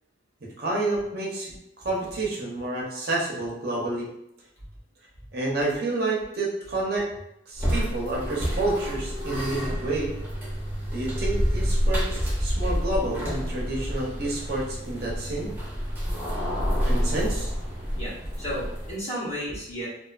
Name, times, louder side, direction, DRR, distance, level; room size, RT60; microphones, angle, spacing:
voice 1, 0.6-1.5 1.8-4.1 5.3-7.1 7.5-10.1 10.9-15.5 16.8-17.5, right 2 dB, 50° right, -3 dB, 0.6 m, -29 dB
sound 1, 7.6-19.0, equal, 10° right, 0.6 m, -28 dB
voice 2, 18.0-19.9, equal, 35° left, -6 dB, 0.8 m, -33 dB
2.4 x 2.4 x 2.3 m, 0.81 s
head